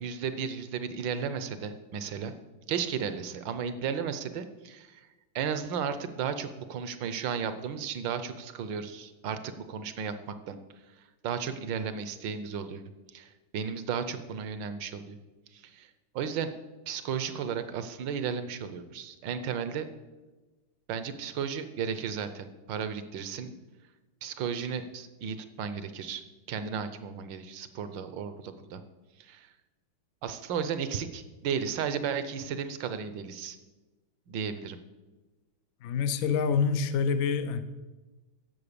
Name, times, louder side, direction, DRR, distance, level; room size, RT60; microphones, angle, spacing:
voice 1, 0.0-2.3 2.7-5.1 5.3-10.6 11.2-12.8 13.1-15.2 15.5-15.9 16.1-16.5 16.9-19.8 20.9-23.6 24.2-26.2 26.5-28.8 29.2-29.5 30.2-33.6 34.3-34.8, right 7 dB, 65° right, 1.3 m, -34 dB
voice 2, 35.8-37.6, left 6 dB, 80° left, 0.7 m, -26 dB
11.0 x 7.4 x 6.8 m
omnidirectional pair, 2.4 m